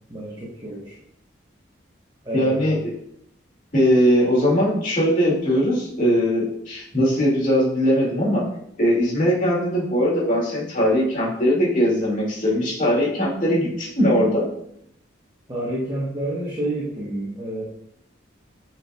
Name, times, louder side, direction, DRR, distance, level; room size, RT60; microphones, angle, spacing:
voice 1, 0.1-1.0 2.2-2.8 15.5-17.6, right 1 dB, 20° right, -6 dB, 1.2 m, -29 dB
voice 2, 2.3-2.8 3.7-8.4 8.8-14.5, equal, 40° left, -5 dB, 2.5 m, -20 dB
8.5 x 4.5 x 2.5 m, 0.75 s
head